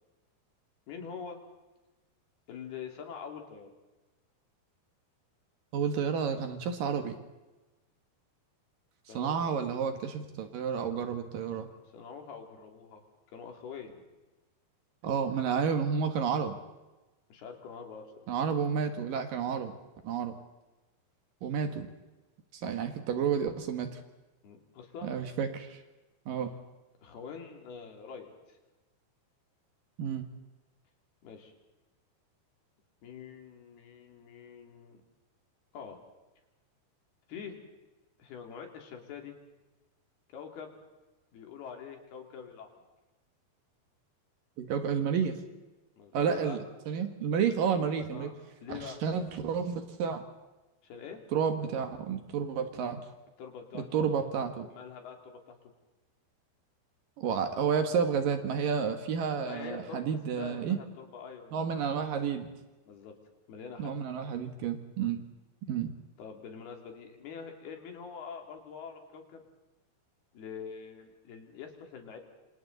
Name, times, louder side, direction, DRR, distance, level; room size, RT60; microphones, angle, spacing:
voice 1, 0.9-1.4 2.5-3.7 9.1-9.5 11.9-13.0 13.3-14.1 17.3-18.3 24.4-25.1 27.0-28.6 31.2-31.5 33.0-35.0 35.7-36.0 37.3-37.6 38.2-39.4 40.3-40.8 41.3-42.7 46.0-46.6 48.1-48.3 48.6-49.0 50.8-51.2 53.4-54.2 54.7-55.6 59.5-61.6 61.9-62.0 62.9-63.1 63.5-63.9 66.2-69.4 70.3-72.2, left 6 dB, 70° left, 3 dB, 4.7 m, -45 dB
voice 2, 5.7-7.2 9.1-11.7 15.0-16.6 18.3-19.7 20.0-20.4 21.4-21.9 22.5-24.0 25.0-25.8 26.3-26.5 30.0-30.2 44.6-45.4 46.1-46.6 46.9-48.3 48.7-50.2 51.3-53.0 53.9-54.7 57.2-60.8 61.5-62.5 63.8-65.2 65.7-65.9, right 7 dB, 65° right, 7 dB, 2.8 m, -30 dB
27.5 x 27.0 x 4.0 m, 1.1 s
omnidirectional pair, 4.7 m